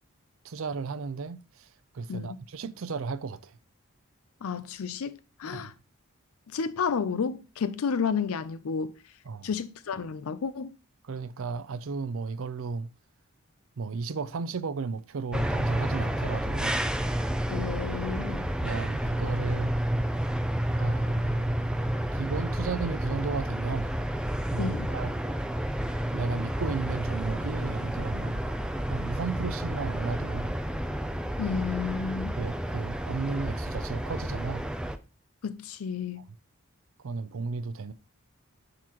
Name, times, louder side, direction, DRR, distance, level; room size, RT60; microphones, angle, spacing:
voice 1, 0.4-1.7 1.9-3.5 5.5-5.7 9.3-9.5 11.0-12.9 13.8-16.9 18.6-19.7 20.8-21.6 22.1-24.0 24.5-25.1 26.1-28.4 28.9-30.5 32.4-34.7 37.0-37.9, right 4 dB, 65° right, 0.5 m, -34 dB
voice 2, 2.1-2.4 4.4-5.1 5.4-5.7 6.5-9.0 9.4-10.8 17.5-18.5 24.6-24.9 31.4-32.4 35.4-36.2, left 6 dB, 75° left, 0.5 m, -31 dB
sound 1, 15.3-35.0, right 1 dB, 5° right, 0.4 m, -30 dB
10.5 x 3.9 x 3.0 m
head